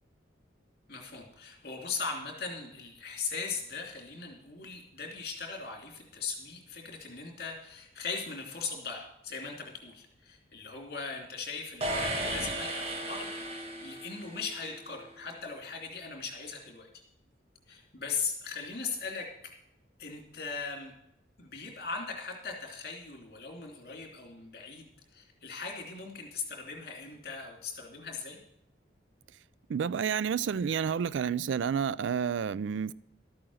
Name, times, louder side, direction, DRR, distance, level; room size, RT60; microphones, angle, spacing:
voice 1, 0.9-16.9 17.7-19.3 20.0-20.9 21.4-28.4, left 5 dB, 55° left, 2.8 m, -39 dB
sound 1, 11.8-14.6, right 1 dB, 30° right, 1.5 m, -35 dB
voice 2, 29.7-32.9, right 7 dB, 85° right, 0.4 m, -30 dB
13.0 x 8.7 x 6.3 m
head